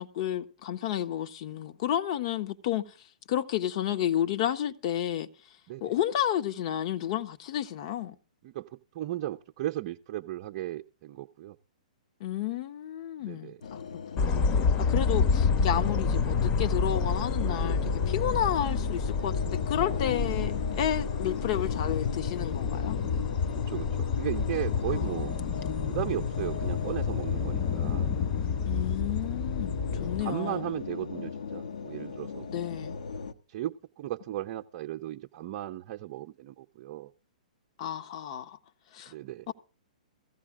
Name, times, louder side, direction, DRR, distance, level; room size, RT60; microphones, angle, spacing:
voice 1, 0.0-2.9 3.3-5.3 5.8-8.1 12.2-14.4 14.9-23.0 24.8-25.1 28.6-30.6 32.5-33.0 37.8-38.6 38.9-39.1 39.5-39.6, left 11 dB, 45° left, 1.2 m, -31 dB
voice 2, 8.4-11.6 13.2-13.6 23.7-25.3 25.9-28.1 30.0-32.6 33.5-37.1 39.1-39.5, right 13 dB, 45° right, 0.7 m, -36 dB
sound 1, 13.6-33.3, left 6 dB, 70° left, 1.6 m, -39 dB
sound 2, 14.2-30.2, left 5 dB, 30° left, 1.1 m, -29 dB
17.0 x 15.0 x 3.7 m
figure-of-eight pair, 115°, 4 cm